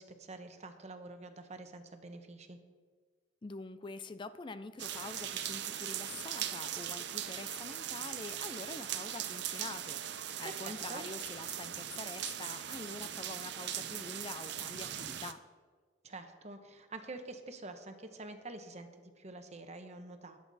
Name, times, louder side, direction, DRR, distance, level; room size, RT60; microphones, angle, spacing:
voice 1, 0.0-2.6 10.4-11.0 16.0-20.4, right 2 dB, 35° right, 7 dB, 1.1 m, -47 dB
voice 2, 3.4-15.4, left 3 dB, 25° left, 13 dB, 0.4 m, -46 dB
sound 1, 4.8-15.3, right 10 dB, 65° right, 0.7 m, -40 dB
21.0 x 8.0 x 4.1 m, 1.5 s
head